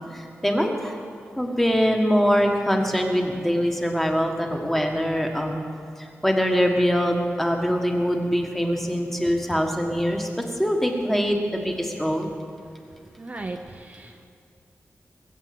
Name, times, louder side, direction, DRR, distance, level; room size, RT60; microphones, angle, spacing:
voice 1, 0.1-0.9 1.4-5.6 6.0-10.3 10.6-12.3, equal, 5° left, 2 dB, 1.5 m, -23 dB
voice 2, 13.2-14.2, right 2 dB, 30° right, 3 dB, 0.7 m, -36 dB
20.5 x 8.1 x 7.7 m, 2.3 s
wide cardioid pair, 150°, 5 cm